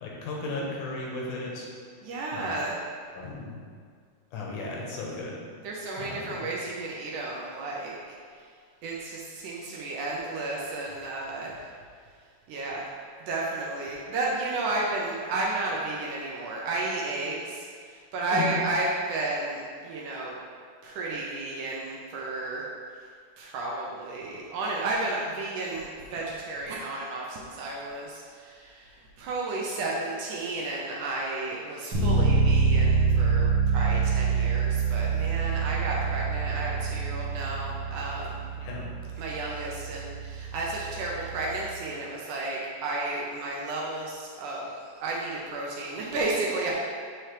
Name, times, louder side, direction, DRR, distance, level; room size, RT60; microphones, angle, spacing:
voice 1, 0.0-1.7 2.3-2.6 3.2-3.6 4.3-5.4 6.0-6.5 18.3-18.5 38.6-38.9, left 2 dB, 70° left, -3 dB, 2.4 m, -35 dB
voice 2, 2.0-2.8 5.6-8.0 8.8-11.5 12.5-12.8 13.3-20.3 20.8-22.6 23.4-28.9 29.2-38.4 39.2-46.7, right 2 dB, 75° right, -4 dB, 2.0 m, -32 dB
Bass guitar, 31.9-41.6, right 5 dB, 50° right, 1.3 m, -26 dB
9.1 x 4.5 x 3.3 m, 2.1 s
omnidirectional pair, 3.9 m